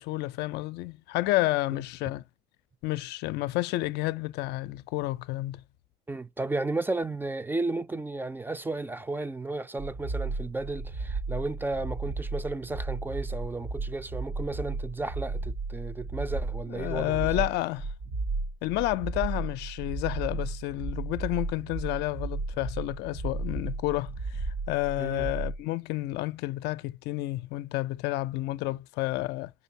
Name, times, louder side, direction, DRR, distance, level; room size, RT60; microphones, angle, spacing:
voice 1, 0.0-2.2 2.8-5.6 16.7-17.9 18.6-29.5, left 18 dB, 85° left, 0.4 m, -30 dB
voice 2, 6.1-17.4 25.0-25.3, right 2 dB, 10° right, 0.3 m, -33 dB
sound 1, 9.8-25.6, right 3 dB, 60° right, 0.9 m, -34 dB
5.0 x 3.2 x 2.7 m
cardioid pair, 110°, 17 cm